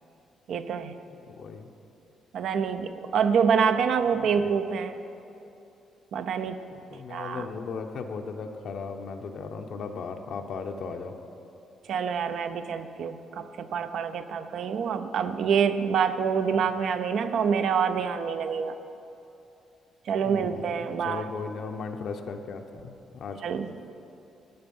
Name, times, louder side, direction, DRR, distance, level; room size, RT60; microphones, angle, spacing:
voice 1, 0.5-0.9 2.3-5.0 6.1-6.6 7.1-7.5 11.9-18.8 20.1-21.2 23.4-23.9, right 6 dB, 70° right, 9 dB, 0.6 m, -26 dB
voice 2, 1.1-1.7 4.1-4.5 6.7-11.1 20.2-23.4, left 5 dB, 65° left, 4 dB, 0.8 m, -37 dB
12.0 x 7.8 x 5.4 m, 2.8 s
cardioid pair, 90°, 0 cm